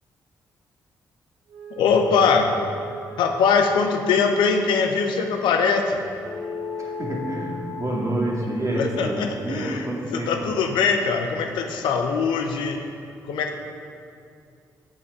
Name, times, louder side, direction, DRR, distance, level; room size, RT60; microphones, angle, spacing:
Wind instrument woodwind instrument, 1.5-6.1, right 7 dB, 75° right, 1.0 m, -41 dB
voice 1, 1.8-2.5 3.2-6.0 8.8-12.8 13.3-13.6, left 5 dB, 80° left, 5 dB, 0.8 m, -22 dB
sound 1, 6.2-11.0, left 5 dB, 25° left, 0.7 m, -37 dB
voice 2, 6.8-10.5, right 1 dB, 40° right, -2 dB, 2.1 m, -28 dB
7.5 x 7.3 x 4.9 m, 2.4 s
hypercardioid pair, 45°, 8 cm